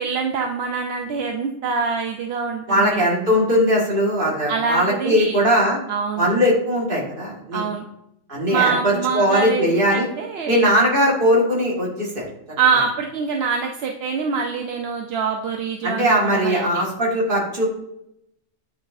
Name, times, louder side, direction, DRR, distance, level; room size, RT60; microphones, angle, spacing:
voice 1, 0.0-3.1 4.5-5.4 5.9-6.3 7.5-7.8 8.5-10.7 12.6-16.8, right 5 dB, 60° right, 3 dB, 0.8 m, -24 dB
voice 2, 2.7-5.8 6.2-7.6 8.3-10.1 10.5-12.3 15.8-17.7, equal, 40° right, -3 dB, 1.9 m, -19 dB
8.9 x 4.1 x 2.6 m, 0.79 s
omnidirectional pair, 1.3 m